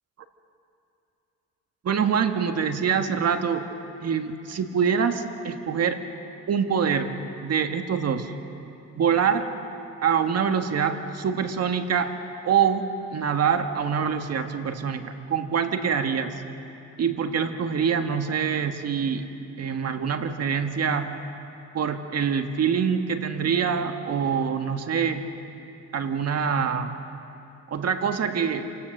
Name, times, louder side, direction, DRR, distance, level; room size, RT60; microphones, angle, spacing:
voice 1, 1.8-3.7 4.0-6.0 6.5-7.1 7.4-8.3 8.9-9.5 10.0-12.1 12.4-12.8 13.1-16.4 17.0-19.3 19.6-21.1 21.7-25.3 25.9-27.0 27.7-28.7, right 7 dB, 55° right, 6 dB, 1.7 m, -25 dB
28.0 x 17.0 x 6.7 m, 2.8 s
cardioid pair, 90°, 30 cm